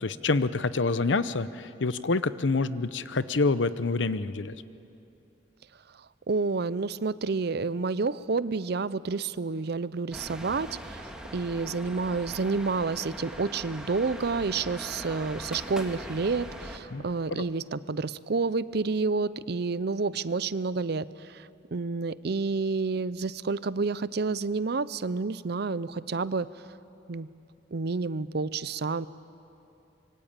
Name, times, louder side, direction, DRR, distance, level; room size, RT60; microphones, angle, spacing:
voice 1, 0.0-4.5 16.9-17.0 17.3-17.5, left 3 dB, 90° left, 14 dB, 0.8 m, -27 dB
voice 2, 6.3-11.1 11.3-26.5 27.1-27.3 27.7-29.1, right 4 dB, 60° right, 17 dB, 0.6 m, -29 dB
sound 1, 10.1-16.8, right 1 dB, 5° right, 2.0 m, -41 dB
25.5 x 23.0 x 9.0 m, 2.8 s
head